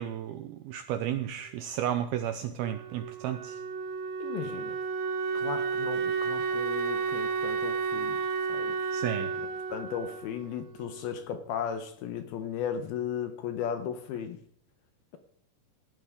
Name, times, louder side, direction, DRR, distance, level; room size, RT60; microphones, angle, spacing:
voice 1, 0.0-3.6 8.9-9.3, right 10 dB, 85° right, 9 dB, 2.2 m, -33 dB
Wind instrument woodwind instrument, 2.6-11.3, right 5 dB, 65° right, 2.6 m, -32 dB
voice 2, 4.2-4.8 5.3-8.2 8.5-14.4, left 8 dB, 70° left, 8 dB, 2.5 m, -36 dB
18.0 x 12.0 x 3.6 m, 0.64 s
omnidirectional pair, 5.1 m